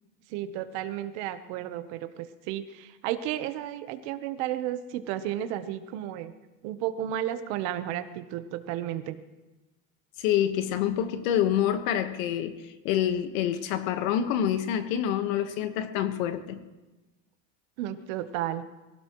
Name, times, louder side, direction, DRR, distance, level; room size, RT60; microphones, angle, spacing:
voice 1, 0.3-6.3 6.6-9.2 17.8-18.6, right 12 dB, 60° right, 10 dB, 1.1 m, -33 dB
voice 2, 10.2-12.5 12.8-16.6, left 10 dB, 75° left, 9 dB, 1.5 m, -27 dB
23.5 x 17.0 x 3.1 m, 1.1 s
cardioid pair, 165°, 41 cm